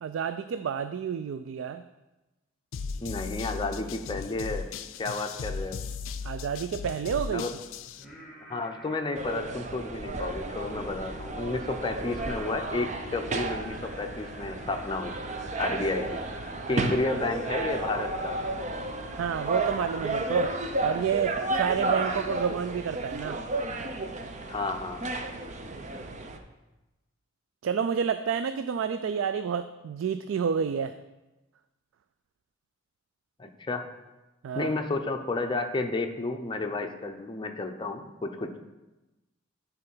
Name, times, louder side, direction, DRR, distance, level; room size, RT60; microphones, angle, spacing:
voice 1, 0.0-1.8 6.2-7.5 16.7-16.8 19.2-20.5 20.8-23.4 27.6-31.0 34.4-34.7, right 7 dB, 85° right, 11 dB, 0.3 m, -29 dB
sound 1, 2.7-8.0, left 5 dB, 85° left, 0.4 m, -37 dB
voice 2, 3.0-4.7 5.0-5.8 7.3-7.5 8.5-15.1 15.6-16.2 16.7-18.4 24.5-25.1 33.4-33.8 34.5-38.6, left 3 dB, 25° left, 5 dB, 0.6 m, -31 dB
Singing, 7.9-20.1, right 1 dB, ahead, 1.8 m, -48 dB
sound 2, 9.1-26.4, right 2 dB, 40° right, 0.6 m, -33 dB
8.9 x 4.3 x 5.5 m, 1.1 s
head